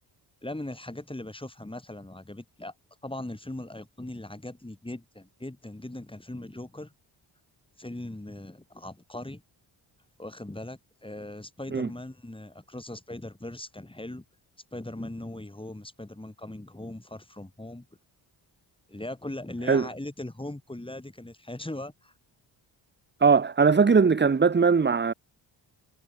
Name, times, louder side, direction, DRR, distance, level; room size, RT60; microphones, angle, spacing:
voice 1, 0.4-2.7 3.0-6.9 7.8-9.4 10.2-14.3 14.7-17.9 18.9-22.1, left 1 dB, 10° left, 7.9 m, -39 dB
voice 2, 23.2-25.1, right 5 dB, 25° right, 1.1 m, -20 dB
cardioid pair, 80°, 45 cm